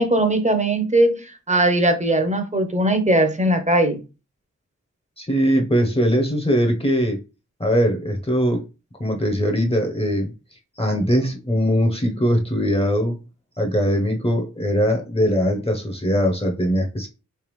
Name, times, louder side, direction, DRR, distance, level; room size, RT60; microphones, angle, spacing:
voice 1, 0.0-4.0, right 1 dB, 25° right, 0.8 m, -19 dB
voice 2, 5.2-7.2 7.6-8.6 9.0-10.3 10.8-13.2 13.6-17.1, equal, 20° left, 0.8 m, -21 dB
3.4 x 3.3 x 3.1 m
wide cardioid pair, 60°, 30 cm